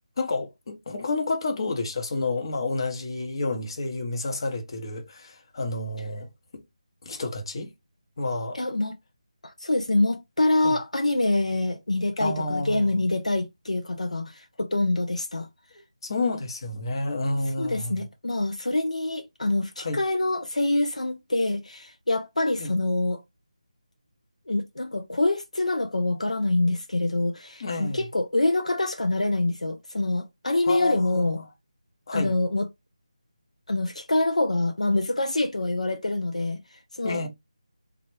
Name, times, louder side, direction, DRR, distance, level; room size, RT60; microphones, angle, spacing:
voice 1, 0.2-6.3 6.5-6.6 7.0-7.7 8.2-8.6 10.6-10.8 12.2-12.9 16.0-18.0 19.8-20.0 22.6-22.7 27.6-28.0 30.6-31.4 32.1-32.3 37.0-37.3, left 2 dB, 45° left, 0.9 m, -29 dB
voice 2, 8.5-9.0 9.6-15.5 17.6-23.2 24.5-31.4 32.1-32.7 33.7-36.6 36.9-37.3, left 2 dB, 80° left, 0.6 m, -25 dB
3.3 x 2.4 x 3.1 m
figure-of-eight pair, 160°, 4 cm